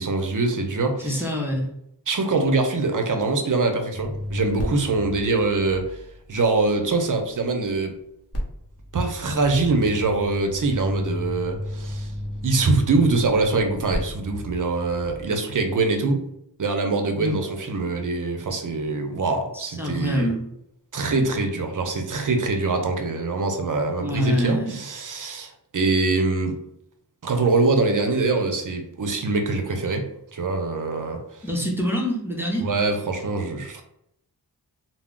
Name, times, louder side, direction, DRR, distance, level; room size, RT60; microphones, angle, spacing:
voice 1, 0.0-1.2 2.1-6.0 6.3-8.0 8.9-12.1 12.4-16.2 16.6-20.3 20.9-26.6 27.2-30.1 30.3-31.2 32.6-33.8, right 3 dB, 50° right, 5 dB, 0.6 m, -23 dB
voice 2, 1.0-1.7 17.2-17.3 19.5-20.4 24.0-24.8 31.4-32.7, equal, 5° right, -2 dB, 0.7 m, -25 dB
sound 1, 3.9-7.1 8.3-15.2, equal, 35° left, 1.0 m, -33 dB
2.2 x 2.0 x 3.6 m, 0.76 s
cardioid pair, 50°, 41 cm